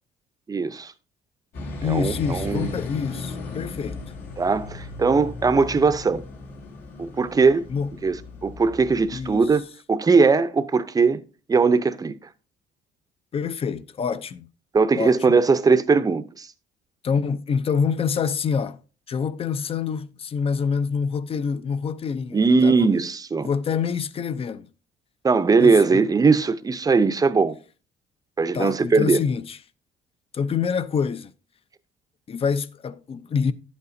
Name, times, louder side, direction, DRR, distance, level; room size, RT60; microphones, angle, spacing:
voice 1, 0.5-0.9 1.8-2.7 4.4-6.2 7.0-7.7 8.0-8.2 8.4-9.6 9.9-11.2 11.5-12.2 14.7-16.5 22.3-23.5 25.2-27.6 28.4-29.2, right 4 dB, 20° right, 0.6 m, -20 dB
sound 1, 1.5-9.6, left 3 dB, 75° left, 3.1 m, -36 dB
voice 2, 1.8-4.0 7.7-7.9 9.1-9.5 13.3-14.5 15.0-15.4 17.0-18.8 19.1-22.9 23.4-24.7 25.6-26.1 28.5-29.6 30.3-31.3 32.3-33.5, left 6 dB, 35° left, 0.6 m, -26 dB
11.5 x 8.3 x 2.7 m
cardioid pair, 110°, 17 cm